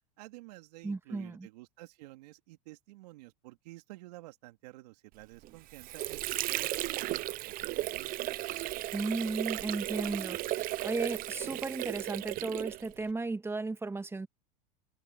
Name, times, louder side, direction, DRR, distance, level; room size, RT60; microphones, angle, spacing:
voice 1, 0.2-6.2 6.5-8.1, right 19 dB, 70° right, 3.0 m, -51 dB
voice 2, 0.8-1.5 8.9-14.3, right 3 dB, 10° right, 1.7 m, -35 dB
Water / Sink (filling or washing), 5.4-13.1, right 16 dB, 45° right, 0.8 m, -35 dB
hypercardioid pair, 100°, 21 cm